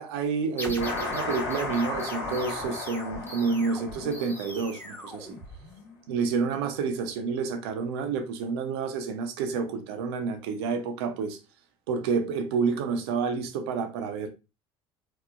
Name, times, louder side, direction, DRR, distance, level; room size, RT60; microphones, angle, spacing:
voice 1, 0.0-5.4 6.1-11.4 11.9-14.3, right 5 dB, 80° right, 0.5 m, -29 dB
sound 1, 0.6-6.0, left 1 dB, 15° left, 0.8 m, -41 dB
sound 2, 0.8-5.1, left 3 dB, 75° left, 1.2 m, -35 dB
2.9 x 2.0 x 2.3 m
hypercardioid pair, 80°, 13 cm